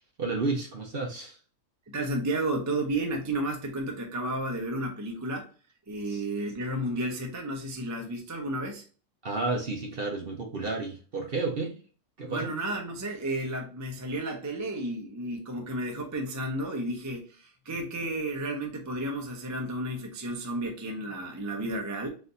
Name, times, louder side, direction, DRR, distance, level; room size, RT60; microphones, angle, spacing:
voice 1, 0.2-1.4 6.1-6.2 9.2-11.8 12.2-12.5, right 3 dB, 45° right, 1 dB, 0.8 m, -31 dB
voice 2, 1.9-5.5 5.9-8.8 12.3-22.1, right 1 dB, 25° right, 2 dB, 0.4 m, -32 dB
4.0 x 2.7 x 3.9 m, 0.38 s
omnidirectional pair, 1.6 m